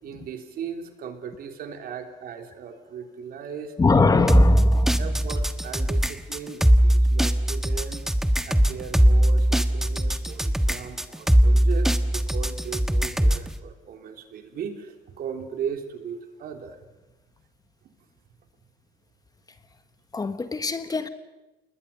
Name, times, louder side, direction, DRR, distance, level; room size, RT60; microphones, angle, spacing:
voice 1, 0.0-3.7 5.0-8.0 8.5-16.8, right 7 dB, 60° right, 5 dB, 3.3 m, -37 dB
voice 2, 3.8-5.1 20.1-21.1, left 4 dB, 20° left, 10 dB, 1.4 m, -22 dB
sound 1, 4.3-13.5, equal, ahead, 1.3 m, -20 dB
28.0 x 20.5 x 6.9 m, 1.1 s
cardioid pair, 110°, 17 cm